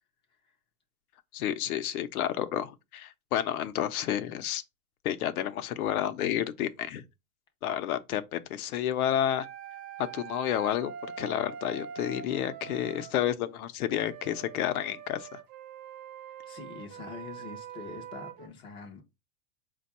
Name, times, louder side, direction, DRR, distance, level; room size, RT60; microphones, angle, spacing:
voice 1, 1.3-4.6 5.0-7.0 7.6-9.5 10.1-15.4, left 11 dB, 75° left, 0.7 m, -30 dB
sound 1, 9.2-13.2 13.9-18.5, right 8 dB, 40° right, 0.6 m, -44 dB
voice 2, 16.3-19.0, left 5 dB, 15° left, 0.4 m, -45 dB
4.3 x 2.3 x 4.1 m
supercardioid pair, 145°, 44 cm